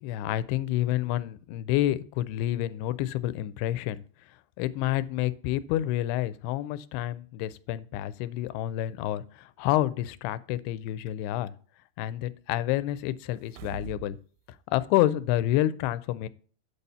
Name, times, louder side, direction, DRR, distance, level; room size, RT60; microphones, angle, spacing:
voice 1, 0.0-4.0 4.6-11.5 12.0-14.2 14.7-16.3, left 14 dB, 85° left, 16 dB, 2.6 m, -28 dB
sound 1, 13.3-14.2 14.5-14.6, right 10 dB, 85° right, 2.4 m, -43 dB
8.7 x 4.2 x 6.7 m, 0.41 s
omnidirectional pair, 4.5 m